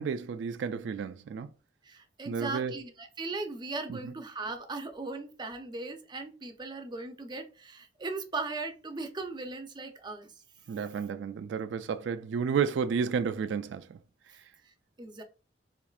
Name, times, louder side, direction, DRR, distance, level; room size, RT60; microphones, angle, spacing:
voice 1, 0.0-1.5 2.3-2.8 3.9-4.1 10.7-14.0, right 6 dB, 85° right, 0.3 m, -32 dB
voice 2, 1.8-10.3 15.0-15.2, right 3 dB, 25° right, 0.5 m, -38 dB
4.5 x 2.6 x 2.4 m
head